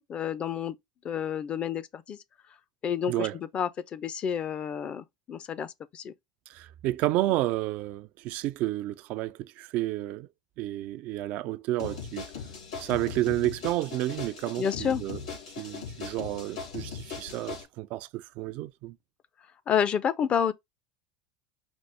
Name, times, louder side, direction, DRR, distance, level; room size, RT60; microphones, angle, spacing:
voice 1, 0.1-0.8 1.0-2.2 2.8-3.3 3.5-6.1 14.6-15.0 19.7-20.5, left 8 dB, 40° left, 0.6 m, -29 dB
voice 2, 3.1-3.4 6.5-10.3 10.6-12.3 12.8-15.2 15.6-19.0, right 16 dB, 60° right, 0.4 m, -31 dB
sound 1, 11.8-17.6, left 6 dB, 85° left, 3.3 m, -39 dB
5.2 x 2.0 x 4.8 m
hypercardioid pair, 80°, 3 cm